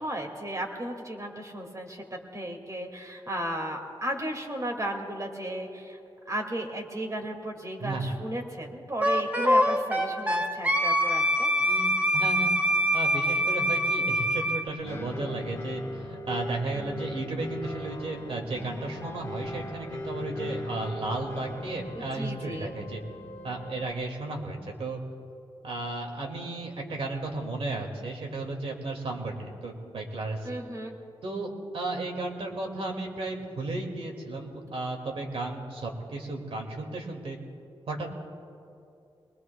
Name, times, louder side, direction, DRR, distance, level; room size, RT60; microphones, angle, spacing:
voice 1, 0.0-2.0 2.3-6.0 6.3-11.5 21.9-22.8 30.4-31.0, right 1 dB, 35° right, 2 dB, 2.2 m, -35 dB
voice 2, 7.8-8.1 11.6-12.5 12.9-23.0 23.4-25.0 25.6-30.6 31.2-37.4 37.9-38.1, right 2 dB, 70° right, 2 dB, 2.3 m, -34 dB
Wind instrument woodwind instrument, 9.0-14.6, equal, 15° right, 1.3 m, -24 dB
sound 1, 14.8-23.9, left 1 dB, 30° left, 1.6 m, -38 dB
24.0 x 20.5 x 2.3 m, 2.6 s
cardioid pair, 80°, 10 cm